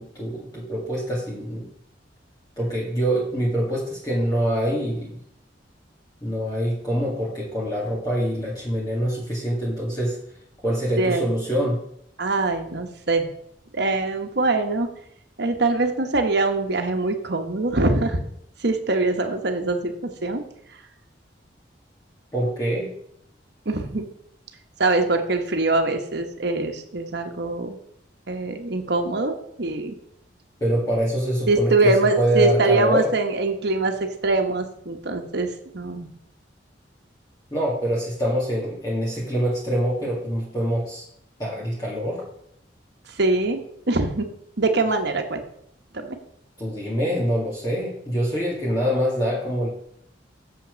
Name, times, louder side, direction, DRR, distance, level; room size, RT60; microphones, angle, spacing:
voice 1, 0.0-1.7 2.6-5.2 6.2-10.2 10.6-11.8 22.3-22.9 30.6-33.1 37.5-41.0 41.4-42.2 46.6-49.7, equal, 20° left, -6 dB, 2.0 m, -25 dB
voice 2, 12.2-13.3 13.7-14.9 15.4-18.2 18.6-20.4 23.6-24.1 24.8-27.8 28.3-30.0 31.5-36.1 43.2-43.6 43.9-44.3 44.6-45.4 45.9-46.2, right 2 dB, 65° right, 5 dB, 1.2 m, -23 dB
7.1 x 5.9 x 6.3 m, 0.70 s
head